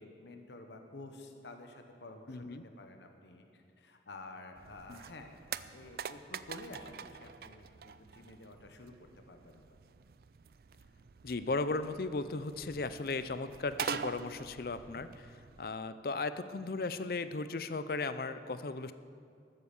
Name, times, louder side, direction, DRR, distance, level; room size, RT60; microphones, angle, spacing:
voice 1, 0.0-5.4 5.7-8.9 9.3-9.6, left 2 dB, 80° left, 5 dB, 1.1 m, -50 dB
voice 2, 2.3-2.6 4.9-5.0 11.2-18.9, left 3 dB, 55° left, 12 dB, 0.5 m, -36 dB
sound 1, 4.6-15.7, right 6 dB, 55° right, 0.4 m, -45 dB
13.5 x 9.3 x 7.1 m, 2.3 s
head